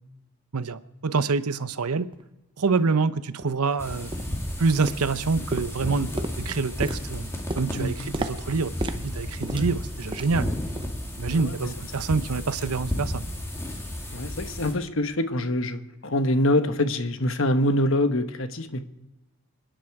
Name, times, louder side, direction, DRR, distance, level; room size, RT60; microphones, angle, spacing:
voice 1, 0.5-2.1 2.6-4.1 4.6-7.3 7.6-10.5 11.2-13.2, right 4 dB, 90° right, 14 dB, 0.8 m, -26 dB
sound 1, 2.1-2.2 2.8-2.9 3.4-3.6 4.1-4.4 4.8-5.2 5.5-10.5 10.8-11.0 11.4-11.6 12.1-12.2, right 2 dB, 20° right, 0.7 m, -35 dB
sound 2, 3.8-14.7, left 1 dB, 10° left, 2.4 m, -33 dB
voice 2, 7.7-8.1 9.5-9.7 11.3-11.6 14.1-18.8, left 1 dB, 60° left, 9 dB, 1.1 m, -25 dB
26.5 x 10.0 x 4.8 m, 0.99 s
head